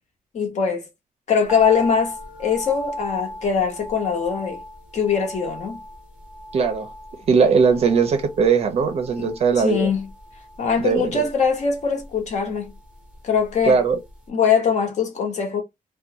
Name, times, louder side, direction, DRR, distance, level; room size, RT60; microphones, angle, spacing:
voice 1, 0.3-0.8 1.3-4.6 4.9-5.8 9.2-10.1 10.6-12.7 13.2-13.8 14.3-15.6, left 6 dB, 50° left, 0.9 m, -22 dB
sound 1, 1.5-13.8 14.0-14.1, equal, 10° right, 0.8 m, -37 dB
voice 2, 6.5-6.9 7.3-9.9 10.8-11.2 13.7-14.0, right 5 dB, 45° right, 0.5 m, -19 dB
2.5 x 2.2 x 2.8 m
wide cardioid pair, 175°, 15 cm